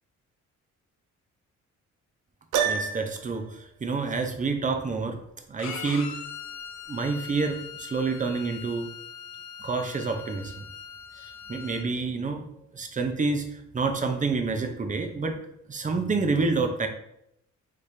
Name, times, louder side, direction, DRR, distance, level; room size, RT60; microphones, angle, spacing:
Piano, 2.5-3.4, right 7 dB, 90° right, 0.5 m, -27 dB
voice 1, 2.6-5.2 5.5-6.1 6.9-8.9 9.6-10.7 11.5-12.4 12.7-13.4 13.7-15.3 15.7-16.9, right 4 dB, 25° right, 5 dB, 0.7 m, -28 dB
Bowed string instrument, 5.6-11.9, left 7 dB, 65° left, 0.7 m, -41 dB
4.1 x 3.3 x 3.3 m, 0.76 s
cardioid pair, 90°, 30 cm